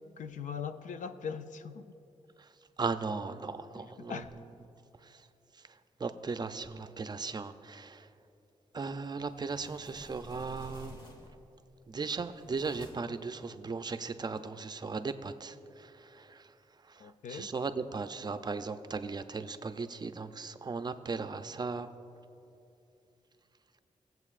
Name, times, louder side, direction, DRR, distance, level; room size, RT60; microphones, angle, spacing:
voice 1, 0.2-1.9 3.8-4.3 17.0-17.5, left 7 dB, 90° left, 11 dB, 0.4 m, -40 dB
voice 2, 2.8-4.2 5.0-5.3 5.7-8.1 8.7-10.9 11.9-16.5 16.8-21.9, right 4 dB, 35° right, 10 dB, 0.4 m, -37 dB
sound 1, 9.1-11.5 12.0-13.2, equal, 35° left, 1.2 m, -51 dB
18.0 x 7.7 x 2.4 m, 2.7 s
wide cardioid pair, 100°, 13 cm